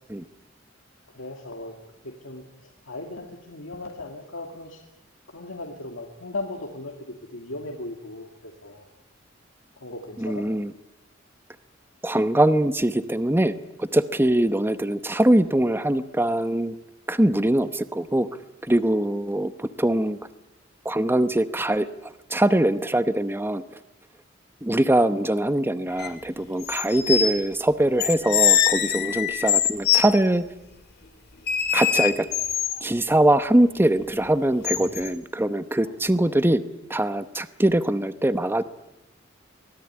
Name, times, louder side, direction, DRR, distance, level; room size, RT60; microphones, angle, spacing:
voice 1, 1.1-1.7 2.0-4.8 5.3-8.8 9.8-10.5 35.8-35.9 36.2-36.4, left 2 dB, 80° left, 1 dB, 2.5 m, -37 dB
voice 2, 10.2-10.7 12.0-16.7 17.1-18.3 18.7-20.2 20.8-21.9 22.3-23.6 24.6-30.5 31.7-32.3 32.8-36.6 36.9-38.6, right 1 dB, 10° right, 12 dB, 0.9 m, -22 dB
sound 1, 26.0-26.1 26.6-27.3 28.0-30.0 31.5-32.8 34.6-35.1, left 9 dB, 55° left, 2.4 m, -23 dB
24.0 x 17.5 x 9.8 m, 0.96 s
head